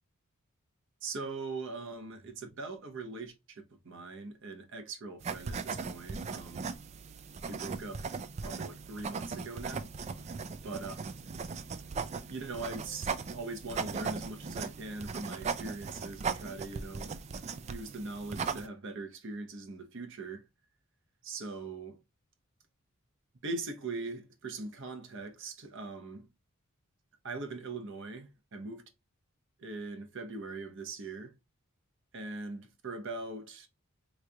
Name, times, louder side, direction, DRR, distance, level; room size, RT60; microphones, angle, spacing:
voice 1, 1.0-6.7 7.5-8.2 8.4-9.9 10.6-10.9 12.3-17.2 17.6-20.4 21.2-22.0 23.4-26.3 27.2-28.8 29.6-31.3 32.1-33.7, right 3 dB, 60° right, 0.8 m, -41 dB
sound 1, 5.2-18.7, right 5 dB, 30° right, 0.3 m, -38 dB
3.8 x 3.1 x 2.2 m
head